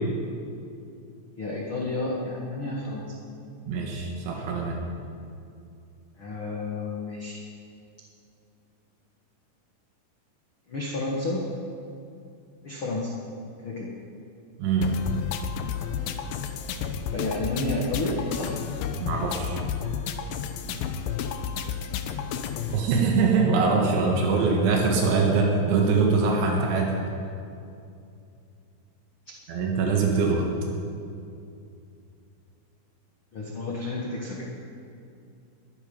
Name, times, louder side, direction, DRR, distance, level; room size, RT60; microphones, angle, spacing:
voice 1, 1.3-3.2 6.2-7.4 10.7-11.4 12.6-13.1 13.6-13.9 17.1-18.6 22.4-22.7 23.9-24.4 33.3-34.4, left 2 dB, 70° left, -3 dB, 1.2 m, -31 dB
voice 2, 3.7-4.8 14.6-14.9 19.0-19.6 22.7-27.0 29.5-30.5, right 4 dB, 85° right, 0 dB, 3.9 m, -23 dB
sound 1, 14.8-22.8, left 7 dB, 85° left, 2.0 m, -31 dB
21.0 x 12.5 x 5.4 m, 2.5 s
omnidirectional pair, 5.3 m